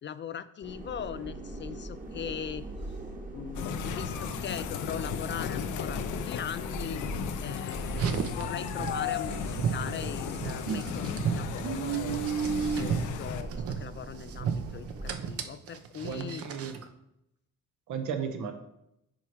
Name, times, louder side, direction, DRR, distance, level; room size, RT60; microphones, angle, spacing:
voice 1, 0.0-2.7 3.3-7.0 7.4-12.3 12.7-16.4, left 8 dB, 40° left, 14 dB, 0.4 m, -40 dB
sound 1, 0.6-15.1, right 2 dB, 25° right, 1.2 m, -42 dB
sound 2, 3.5-13.4, left 8 dB, 80° left, 0.6 m, -35 dB
Car, 7.9-16.9, right 7 dB, 50° right, 0.7 m, -33 dB
voice 2, 16.0-16.8 17.9-18.5, right 7 dB, 80° right, 6 dB, 1.1 m, -34 dB
7.1 x 4.7 x 4.6 m, 0.83 s
cardioid pair, 90°, 30 cm